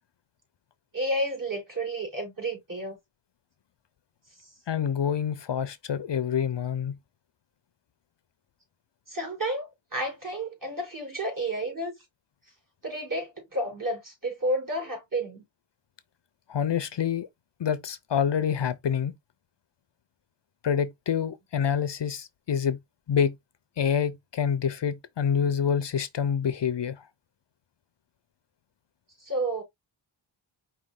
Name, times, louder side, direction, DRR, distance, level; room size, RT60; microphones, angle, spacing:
voice 1, 0.9-3.0 4.4-4.5 9.1-11.9 12.8-15.4 29.2-29.6, right 1 dB, 40° right, 3.8 m, -31 dB
voice 2, 4.7-6.9 16.5-17.3 17.6-19.1 20.6-22.8 23.1-23.3 23.8-27.1, left 8 dB, 60° left, 0.7 m, -27 dB
5.3 x 2.6 x 3.7 m
wide cardioid pair, 70°, 49 cm